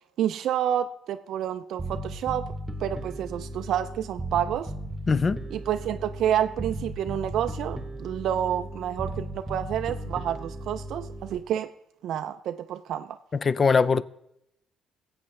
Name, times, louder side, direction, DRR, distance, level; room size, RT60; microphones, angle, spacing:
voice 1, 0.2-2.5 2.8-4.7 5.5-11.7 12.0-13.2, right 10 dB, 70° right, 0.3 m, -29 dB
Bass guitar, 1.8-11.4, right 1 dB, 10° right, 1.1 m, -36 dB
voice 2, 5.1-5.5 13.3-14.0, left 5 dB, 35° left, 0.4 m, -22 dB
18.0 x 7.9 x 3.2 m
cardioid pair, 100°, 0 cm